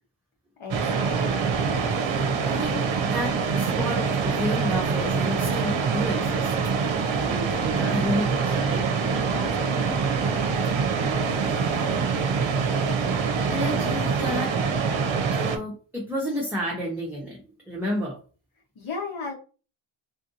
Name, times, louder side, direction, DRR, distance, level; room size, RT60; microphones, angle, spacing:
voice 1, 0.6-1.4 9.3-10.4 18.7-19.3, left 4 dB, 80° left, 1 dB, 1.1 m, -37 dB
sound 1, 0.7-15.6, right 5 dB, 70° right, 0.6 m, -25 dB
voice 2, 2.4-6.5 7.0-8.9 11.6-11.8 13.5-17.4 17.7-18.2, equal, 5° right, -4 dB, 0.8 m, -31 dB
3.6 x 2.5 x 2.7 m, 0.36 s
wide cardioid pair, 115°, 48 cm